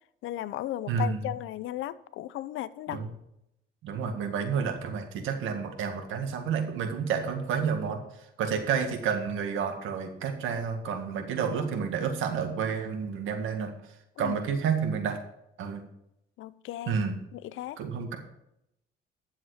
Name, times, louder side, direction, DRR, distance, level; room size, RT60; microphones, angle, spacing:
voice 1, 0.2-3.0 14.2-14.4 16.4-17.0 17.3-17.8, left 14 dB, 85° left, 16 dB, 0.6 m, -35 dB
voice 2, 0.9-1.2 2.9-3.1 3.8-8.0 8.4-13.7 14.2-15.2 15.6-15.8 16.9-17.1 17.8-18.2, right 6 dB, 85° right, 6 dB, 1.9 m, -30 dB
10.5 x 7.3 x 4.9 m, 0.81 s
cardioid pair, 90°, 20 cm